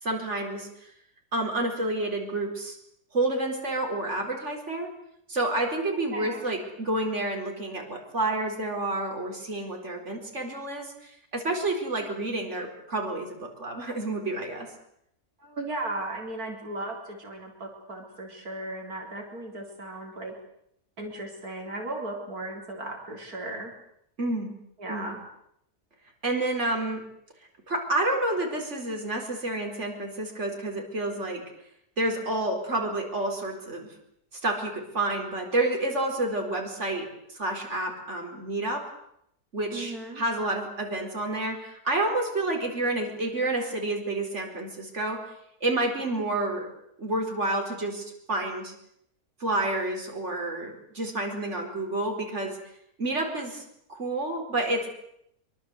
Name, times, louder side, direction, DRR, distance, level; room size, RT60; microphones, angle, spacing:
voice 1, 0.0-0.7 1.3-2.8 3.1-4.9 5.3-14.7 24.2-24.5 24.9-25.1 26.2-27.0 27.7-31.4 32.0-33.9 34.4-38.8 39.5-45.2 45.6-46.7 47.0-48.7 49.4-52.6 53.0-53.6 53.9-54.9, right 2 dB, 50° right, 2 dB, 4.9 m, -29 dB
voice 2, 5.9-6.5 15.4-20.3 21.0-23.7 24.8-25.2 39.7-40.2, right 2 dB, 80° right, 1 dB, 4.3 m, -36 dB
24.5 x 24.0 x 8.0 m, 0.75 s
omnidirectional pair, 1.6 m